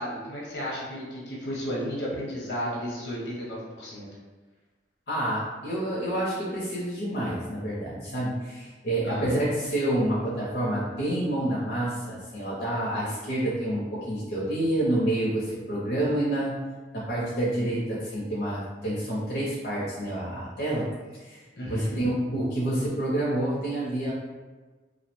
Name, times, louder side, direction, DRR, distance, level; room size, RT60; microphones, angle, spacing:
voice 1, 0.0-4.1 9.0-9.4 21.6-22.0, equal, 80° left, -5 dB, 0.8 m, -33 dB
voice 2, 5.1-16.6 16.9-20.9 21.2-24.1, right 1 dB, 60° left, -7 dB, 0.6 m, -28 dB
2.6 x 2.0 x 2.9 m, 1.3 s
head